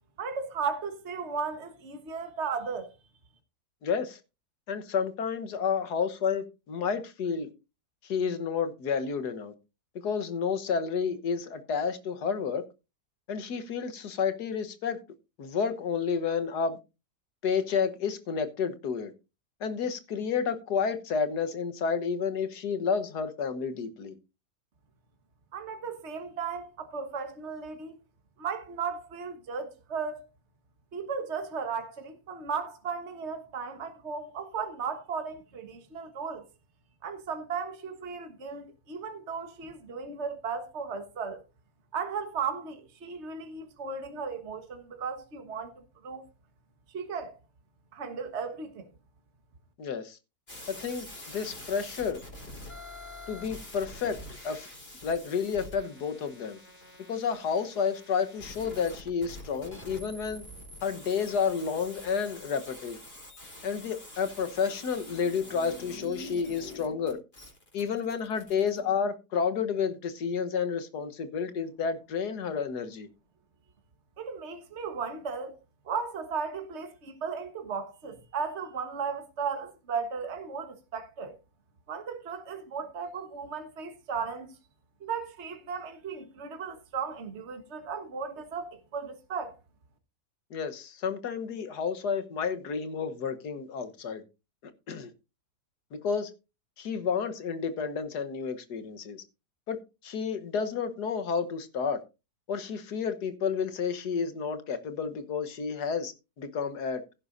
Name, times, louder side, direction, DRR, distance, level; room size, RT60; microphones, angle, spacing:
voice 1, 0.2-2.9 25.5-28.0 28.4-30.2 30.9-36.5 37.0-41.4 41.9-45.7 46.0-46.3 46.9-47.4 47.9-48.9 74.2-75.5 75.8-81.4 81.9-84.5 85.0-89.6, right 5 dB, 45° right, 1.6 m, -35 dB
voice 2, 3.8-4.2 4.7-7.5 8.0-9.5 10.0-12.6 13.3-15.0 15.4-16.8 17.4-19.1 19.6-24.1 49.8-50.2 50.7-52.2 53.3-54.2 54.4-54.7 55.0-56.6 57.1-60.5 60.8-63.0 63.6-67.2 67.7-73.1 90.5-94.2 94.6-95.1 95.9-96.3 96.8-99.2 99.7-99.8 100.0-102.0 102.5-107.0, left 6 dB, 80° left, 1.7 m, -30 dB
sound 1, 50.5-68.8, left 1 dB, 35° left, 4.4 m, -47 dB
16.0 x 9.6 x 2.6 m
omnidirectional pair, 1.7 m